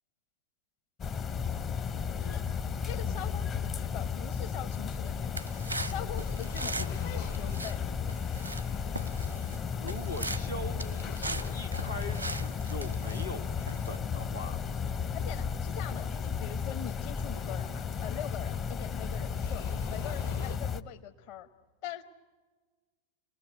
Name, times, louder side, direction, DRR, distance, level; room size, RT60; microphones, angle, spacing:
sound 1, 1.0-20.8, left 6 dB, 30° left, 0.7 m, -34 dB
voice 1, 2.8-5.5 5.8-7.9 15.1-21.5 21.8-22.0, left 9 dB, 50° left, 7 dB, 1.0 m, -43 dB
sound 2, 3.3-20.6, left 6 dB, 65° left, 1.3 m, -53 dB
sound 3, 5.3-7.0 7.2-7.8 8.1-8.7 8.9-9.6 9.9-10.5 10.8-13.3 13.7-14.0, right 2 dB, 85° right, 0.8 m, -40 dB
voice 2, 9.8-14.6, left 1 dB, 85° left, 2 dB, 1.4 m, -41 dB
29.0 x 19.5 x 9.6 m, 1.4 s
figure-of-eight pair, 90°, 0 cm